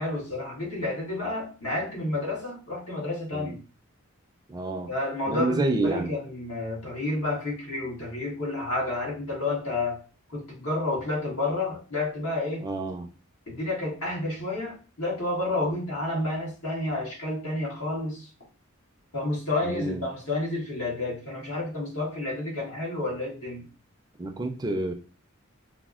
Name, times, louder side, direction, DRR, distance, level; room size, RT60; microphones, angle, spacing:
voice 1, 0.0-3.6 4.9-10.0 10.3-12.7 13.5-18.3 19.1-23.7, left 2 dB, 85° left, -3 dB, 1.4 m, -30 dB
voice 2, 4.5-4.9 5.3-6.1 12.6-13.1 19.6-20.0 24.2-24.9, right 2 dB, 20° right, 4 dB, 0.4 m, -29 dB
4.1 x 2.0 x 2.4 m, 0.35 s
head